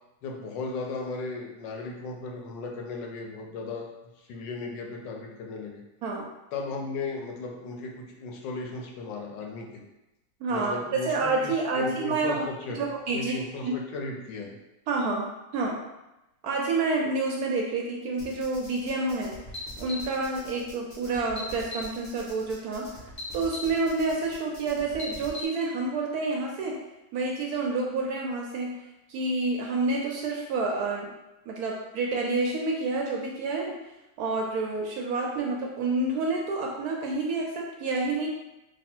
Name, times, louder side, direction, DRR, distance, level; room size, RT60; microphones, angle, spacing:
voice 1, 0.2-5.8 6.5-9.8 10.5-14.6, left 3 dB, 80° left, 1 dB, 1.3 m, -36 dB
voice 2, 10.4-12.4 12.7-13.3 13.6-13.7 14.9-15.2 15.5-15.8 16.4-19.3 19.8-22.9 23.3-26.8 27.1-28.8 29.1-31.1 31.5-33.7 34.2-38.3, right 3 dB, 70° right, -1 dB, 0.9 m, -28 dB
sound 1, 18.2-25.4, left 2 dB, 45° left, 0.6 m, -41 dB
3.3 x 2.3 x 4.3 m, 0.97 s
omnidirectional pair, 1.9 m